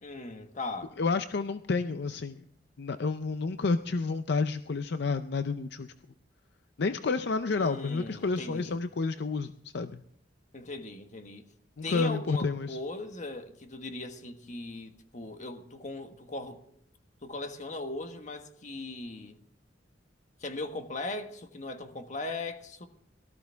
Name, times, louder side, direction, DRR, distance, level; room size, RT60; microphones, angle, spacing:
voice 1, 0.0-0.9 7.5-8.8 10.5-11.4 11.8-16.6 17.2-19.4 20.4-22.9, left 2 dB, 40° left, 1.5 m, -39 dB
voice 2, 1.0-2.5 2.8-5.9 6.8-10.0 11.8-12.8, left 4 dB, 65° left, 0.5 m, -30 dB
18.0 x 14.0 x 3.5 m
head